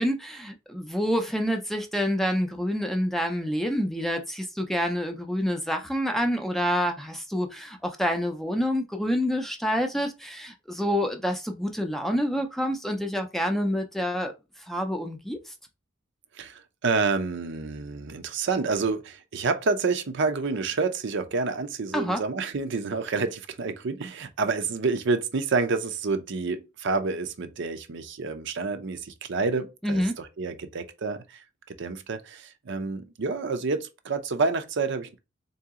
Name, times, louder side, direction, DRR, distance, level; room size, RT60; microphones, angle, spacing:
voice 1, 0.0-14.3 14.7-15.5 21.9-22.2 29.8-30.1, equal, ahead, 0.5 m, -27 dB
voice 2, 16.4-31.4 31.7-35.2, right 4 dB, 65° right, 0.6 m, -28 dB
3.8 x 2.8 x 3.6 m
head